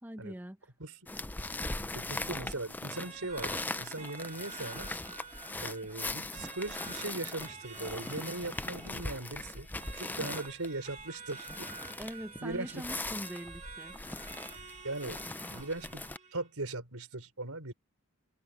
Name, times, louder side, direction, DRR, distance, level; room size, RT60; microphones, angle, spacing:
voice 1, 0.0-0.6 12.0-13.9, equal, 10° right, 1.1 m, -42 dB
sound 1, 1.1-16.2, left 2 dB, 10° left, 0.4 m, -40 dB
voice 2, 1.9-5.0 5.6-9.7 9.9-11.7 12.4-12.9 14.8-15.2 15.5-16.0 16.3-17.7, right 2 dB, 85° right, 4.0 m, -39 dB
sound 2, 2.9-16.5, right 5 dB, 30° right, 2.6 m, -49 dB
open air
head